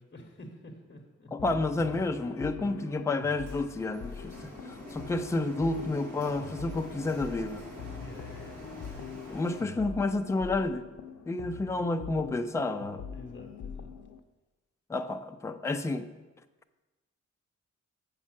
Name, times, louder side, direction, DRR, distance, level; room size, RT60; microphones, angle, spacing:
voice 1, 0.0-1.3 8.0-8.7 13.1-13.9, left 1 dB, 35° left, 0 dB, 0.9 m, -48 dB
voice 2, 1.3-7.6 9.3-10.9 11.3-13.0 14.9-16.1, left 2 dB, 10° left, 7 dB, 0.3 m, -30 dB
sound 1, 1.4-14.2, left 7 dB, 70° left, 0.6 m, -43 dB
Printer, 3.4-9.6, right 1 dB, 55° right, 2.3 m, -46 dB
7.3 x 5.5 x 7.3 m, 1.2 s
wide cardioid pair, 165°, 30 cm